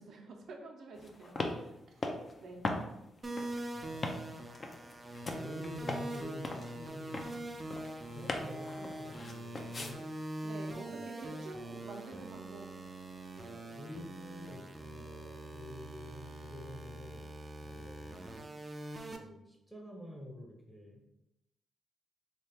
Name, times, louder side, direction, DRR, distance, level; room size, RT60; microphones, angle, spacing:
voice 1, 0.0-2.0 2.4-2.6 10.4-12.7 13.4-13.7, right 2 dB, 70° right, 1 dB, 0.6 m, -48 dB
sound 1, 1.0-9.9, left 2 dB, 35° left, 0.5 m, -41 dB
sound 2, 3.2-19.2, right 1 dB, 25° right, 0.4 m, -43 dB
voice 2, 3.7-4.1 5.2-7.7 8.1-10.1 10.7-11.1 13.8-17.3 17.6-18.4 19.1-21.0, left 1 dB, 5° left, 0 dB, 0.8 m, -48 dB
3.1 x 2.8 x 3.4 m, 0.86 s
cardioid pair, 110°, 0 cm